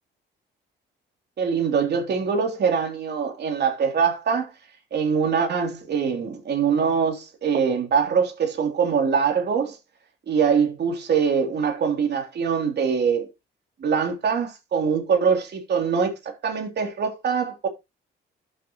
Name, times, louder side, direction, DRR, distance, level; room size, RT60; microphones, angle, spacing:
voice 1, 1.4-4.5 4.9-9.8 10.3-13.3 13.8-17.7, right 6 dB, 55° right, 3.1 m, -23 dB
12.0 x 6.8 x 3.0 m
cardioid pair, 90°, 20 cm